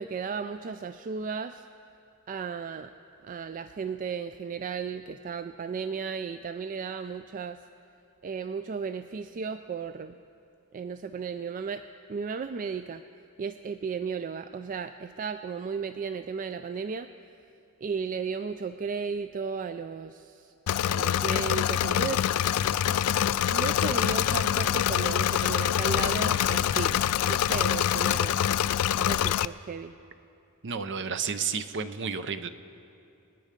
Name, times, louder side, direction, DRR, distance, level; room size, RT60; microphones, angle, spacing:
voice 1, 0.0-1.7 2.3-2.9 3.2-7.6 8.2-10.2 10.7-11.8 12.1-13.0 13.4-17.1 17.8-20.5 20.8-22.2 23.5-28.4 29.0-30.0, right 5 dB, 40° right, 10 dB, 0.3 m, -34 dB
Engine / Mechanisms, 20.7-29.5, left 10 dB, 85° left, 0.3 m, -25 dB
voice 2, 30.6-32.5, right 6 dB, 55° right, 11 dB, 0.7 m, -31 dB
27.0 x 9.6 x 5.2 m, 2.6 s
head